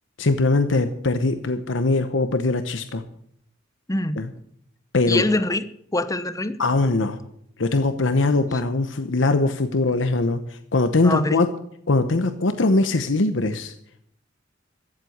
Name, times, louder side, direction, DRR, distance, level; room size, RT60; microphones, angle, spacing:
voice 1, 0.2-3.0 4.2-4.3 4.9-5.3 6.6-7.2 7.6-11.5 11.9-13.7, left 2 dB, 80° left, 10 dB, 0.9 m, -21 dB
voice 2, 5.1-5.6 5.9-6.6 11.0-11.4, left 2 dB, 20° left, 12 dB, 0.9 m, -23 dB
15.0 x 7.9 x 8.0 m, 0.71 s
head